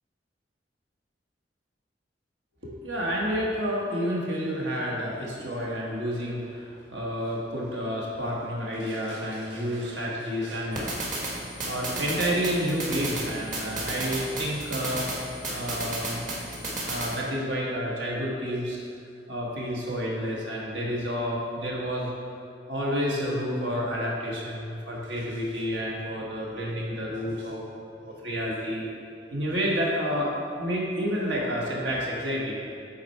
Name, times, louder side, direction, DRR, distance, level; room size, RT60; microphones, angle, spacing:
voice 1, 2.6-15.1 15.5-16.3 16.9-18.8 19.3-22.1 22.7-27.7 28.0-28.9 29.3-30.3 30.6-32.6, equal, 75° right, -4 dB, 1.5 m, -30 dB
sound 1, 10.7-17.2, right 1 dB, 45° right, 1.4 m, -33 dB
8.6 x 4.2 x 4.5 m, 2.3 s
head